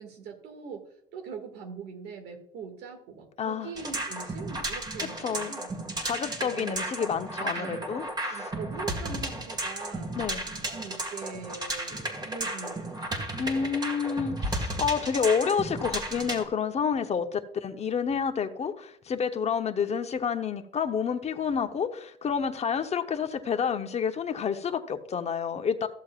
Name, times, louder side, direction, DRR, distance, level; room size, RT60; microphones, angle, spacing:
voice 1, 0.0-5.7 6.0-6.8 7.3-8.0 8.3-10.2 10.4-13.2, right 5 dB, 80° right, 4 dB, 2.1 m, -42 dB
voice 2, 3.4-3.7 5.2-5.5 6.0-8.5 10.1-10.4 13.4-25.9, left 6 dB, 40° left, 7 dB, 0.9 m, -29 dB
sound 1, 3.7-16.4, right 1 dB, 25° right, 1.9 m, -34 dB
14.5 x 7.3 x 2.5 m, 0.67 s
cardioid pair, 110°, 17 cm